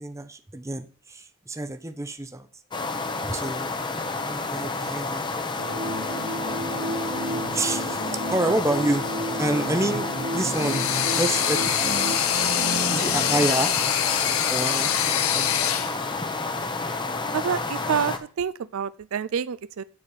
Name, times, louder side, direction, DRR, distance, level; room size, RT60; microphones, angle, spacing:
voice 1, 0.0-2.5 3.2-3.9 4.2-5.3 6.6-9.0 9.4-12.2 12.9-13.7 14.5-14.9 15.3-15.9, right 2 dB, 15° right, 0.6 m, -29 dB
sound 1, 2.7-18.2, left 3 dB, 20° left, 0.8 m, -30 dB
sound 2, 5.6-13.5, right 1 dB, 45° right, 1.1 m, -32 dB
sound 3, 10.4-15.9, left 10 dB, 70° left, 0.8 m, -25 dB
voice 2, 17.3-19.8, right 7 dB, 70° right, 0.4 m, -28 dB
9.6 x 4.2 x 7.3 m
head